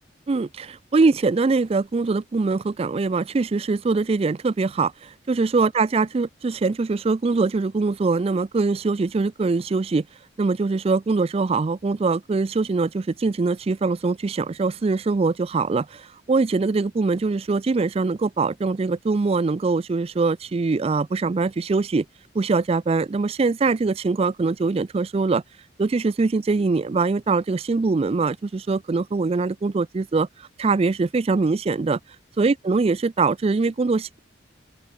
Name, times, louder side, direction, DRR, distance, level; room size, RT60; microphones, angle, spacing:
voice 1, 0.3-10.1 10.4-22.1 22.3-25.4 25.8-30.3 30.6-32.0 32.4-34.2, right 3 dB, 35° right, 0.4 m, -23 dB
open air
head